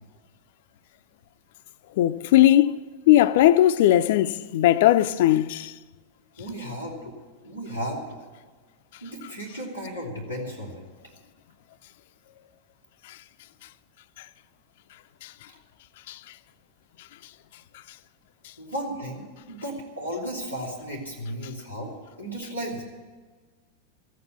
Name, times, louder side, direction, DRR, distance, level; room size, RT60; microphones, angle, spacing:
voice 1, 2.0-2.8 3.1-5.7 13.1-13.2 15.2-15.3 16.1-16.2, left 13 dB, 55° left, 0.4 m, -19 dB
voice 2, 6.4-7.1 7.4-8.2 9.0-10.8 18.6-22.8, equal, 90° right, 3.1 m, -34 dB
14.5 x 9.4 x 8.6 m
figure-of-eight pair, 90°, 0 cm